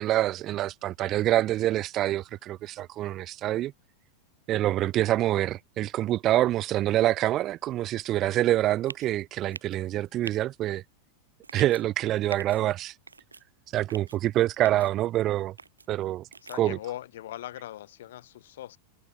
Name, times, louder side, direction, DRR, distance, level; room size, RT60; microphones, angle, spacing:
voice 1, 0.0-3.7 4.5-10.8 11.5-12.9 13.7-15.5 15.9-16.3 16.5-16.8, right 14 dB, 35° right, 0.9 m, -26 dB
sound 1, 8.9-9.1 9.5-9.8 10.2-10.4 11.4-11.8 12.3-12.6 13.1-13.4 13.9-14.2 14.6-14.9 15.6-15.9 16.3-16.6, right 4 dB, 75° right, 2.1 m, -42 dB
voice 2, 16.4-18.8, left 13 dB, 60° left, 2.4 m, -40 dB
figure-of-eight pair, 90°, 0 cm